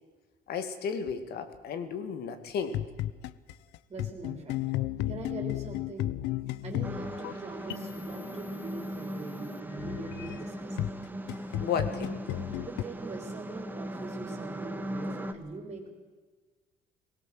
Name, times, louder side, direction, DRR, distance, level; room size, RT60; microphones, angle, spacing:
voice 1, 0.5-2.8 11.6-12.1, left 6 dB, 70° left, 9 dB, 2.3 m, -33 dB
sound 1, 2.7-10.4 10.8-12.8, left 15 dB, 90° left, 0.7 m, -34 dB
voice 2, 3.9-4.7 5.1-6.1 6.6-10.8 12.6-15.9, right 3 dB, 30° right, 2 dB, 4.1 m, -42 dB
sound 2, 6.8-15.3, right 1 dB, 10° right, 1.4 m, -38 dB
19.5 x 17.5 x 7.9 m, 1.4 s
cardioid pair, 110°, 17 cm